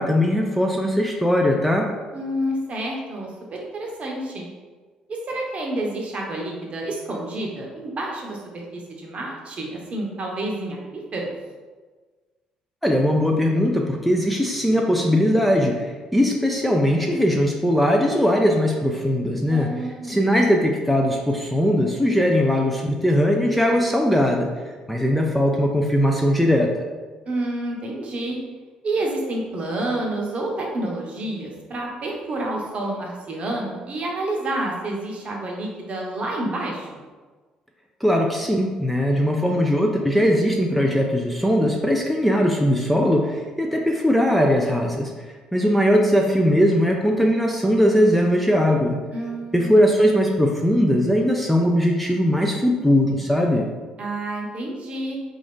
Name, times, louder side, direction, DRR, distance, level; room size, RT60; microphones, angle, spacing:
voice 1, 0.0-1.9 12.8-19.7 20.0-24.5 24.9-26.7 38.0-45.3 45.5-49.0 49.5-53.7, equal, ahead, 0 dB, 0.4 m, -20 dB
voice 2, 2.1-4.5 5.1-11.3 19.5-20.2 27.3-28.4 28.8-37.0 49.1-49.8 54.0-55.2, right 1 dB, 45° right, -1 dB, 0.7 m, -29 dB
2.5 x 2.5 x 3.5 m, 1.4 s
hypercardioid pair, 50°, 3 cm